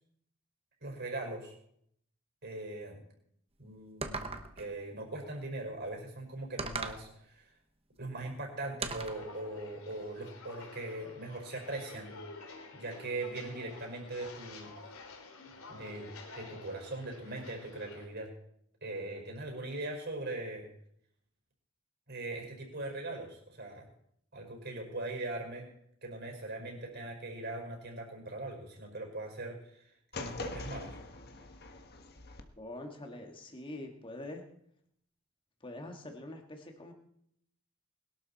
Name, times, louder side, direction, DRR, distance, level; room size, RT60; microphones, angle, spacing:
voice 1, 0.8-1.5 2.4-3.0 3.6-4.3 4.6-7.5 8.0-12.1 12.7-14.7 15.7-18.3 18.8-20.7 22.1-23.9 24.3-25.7 26.0-29.8 30.1-31.0, right 2 dB, 50° right, 2 dB, 5.4 m, -40 dB
sound 1, 4.0-4.7 6.6-7.1 8.8-9.2, right 4 dB, 25° right, 1.1 m, -37 dB
Walk footsteps, 9.0-18.0, left 3 dB, 80° left, 2.9 m, -50 dB
sound 2, 30.1-32.4, left 3 dB, 45° left, 1.4 m, -43 dB
voice 2, 32.6-34.4 35.6-36.9, left 1 dB, 25° left, 2 dB, 2.2 m, -44 dB
21.0 x 12.0 x 4.3 m, 0.71 s
head